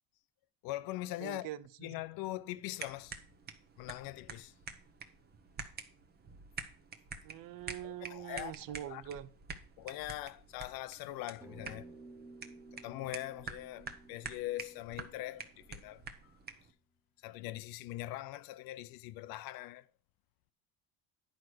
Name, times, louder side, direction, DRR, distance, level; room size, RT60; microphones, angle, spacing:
voice 1, 0.6-1.5 1.8-3.2 3.8-4.5 7.8-8.5 8.9-9.0 9.8-11.9 12.7-16.4 17.2-19.9, left 16 dB, 55° left, 0.6 m, -42 dB
voice 2, 1.2-1.9 7.2-9.3, right 12 dB, 50° right, 0.7 m, -44 dB
sound 1, 2.8-16.7, right 5 dB, 25° right, 0.9 m, -48 dB
sound 2, 11.4-16.1, right 3 dB, 5° right, 0.3 m, -55 dB
10.5 x 5.0 x 6.2 m
cardioid pair, 155°, 43 cm